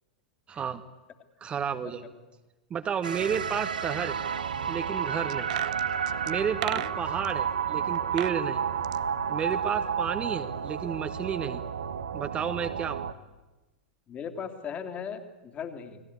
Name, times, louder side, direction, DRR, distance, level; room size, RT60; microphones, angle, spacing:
voice 1, 0.5-0.8 1.4-2.0 2.7-4.2 4.7-5.5 6.2-8.6 9.3-11.6 12.1-13.0, right 7 dB, 25° right, 9 dB, 1.4 m, -31 dB
sound 1, 3.0-13.1, right 7 dB, 75° right, 1.4 m, -31 dB
sound 2, 5.3-7.3 7.9-8.4 8.7-10.1 10.3-10.4, right 14 dB, 55° right, 0.8 m, -36 dB
voice 2, 14.1-16.0, left 7 dB, 30° left, 6 dB, 3.1 m, -38 dB
29.5 x 21.5 x 8.4 m, 1.1 s
figure-of-eight pair, 90°, 5 cm